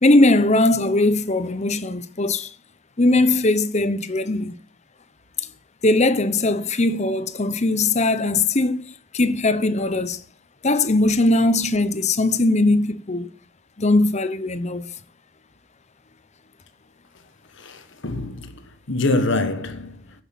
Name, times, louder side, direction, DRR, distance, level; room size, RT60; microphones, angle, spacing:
voice 1, 0.0-2.5 3.0-4.5 5.8-10.2 10.6-13.3 13.8-14.9, left 2 dB, 30° left, 0.9 m, -20 dB
voice 2, 17.6-18.6 18.9-20.0, left 2 dB, 55° left, 1.4 m, -24 dB
9.9 x 8.2 x 8.5 m
head